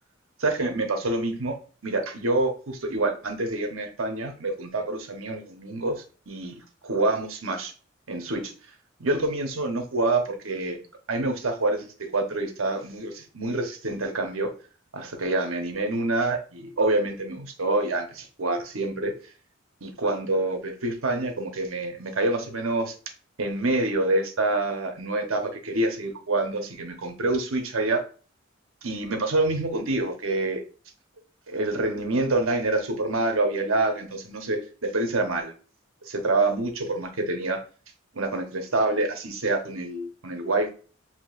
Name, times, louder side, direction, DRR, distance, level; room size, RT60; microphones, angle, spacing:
voice 1, 0.4-1.6 1.8-7.7 8.1-8.5 9.0-10.8 11.1-14.5 14.9-19.1 19.8-22.9 23.4-28.0 28.8-30.6 31.5-35.5 36.1-37.6 38.1-40.7, right 2 dB, 80° right, 4 dB, 1.0 m, -27 dB
7.4 x 2.9 x 2.5 m, 0.37 s
head